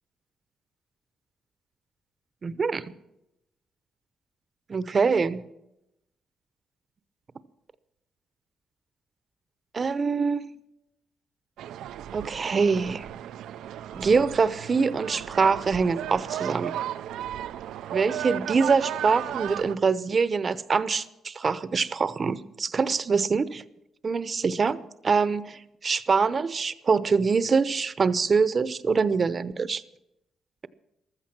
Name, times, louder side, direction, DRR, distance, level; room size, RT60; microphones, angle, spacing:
voice 1, 2.4-2.9 4.7-5.4 9.7-10.4 12.1-13.1 13.9-16.7 17.9-23.6 24.0-24.8 25.0-29.8, right 5 dB, 40° right, 15 dB, 0.8 m, -24 dB
sound 1, 11.6-19.8, right 11 dB, 85° right, 0.5 m, -35 dB
15.0 x 13.5 x 6.1 m, 0.86 s
cardioid pair, 100°, 0 cm